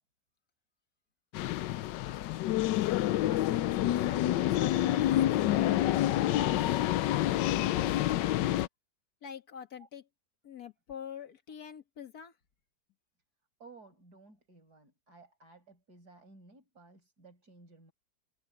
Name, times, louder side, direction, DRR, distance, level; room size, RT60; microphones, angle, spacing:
sound 1, 1.3-8.7, left 13 dB, 90° left, 1.3 m, -28 dB
voice 1, 2.8-6.7 7.1-7.4 7.7-8.3 9.2-10.0 10.4-12.3, left 8 dB, 60° left, 2.0 m, -46 dB
voice 2, 13.6-17.9, right 3 dB, 60° right, 5.9 m, -56 dB
omnidirectional pair, 1.9 m